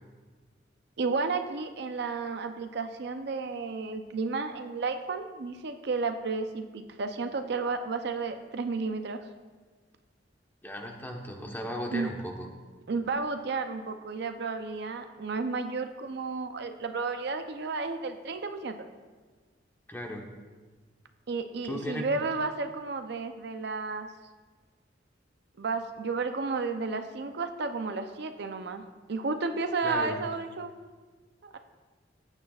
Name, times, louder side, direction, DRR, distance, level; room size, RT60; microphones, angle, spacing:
voice 1, 1.0-9.2 11.9-12.1 12.9-18.8 21.3-24.1 25.6-28.8 29.1-30.7 31.4-31.6, right 4 dB, 65° right, 7 dB, 0.6 m, -32 dB
voice 2, 10.6-12.5 19.9-20.3 21.6-22.2 29.8-30.2, equal, 10° left, 1 dB, 1.1 m, -36 dB
15.0 x 8.9 x 2.4 m, 1.4 s
head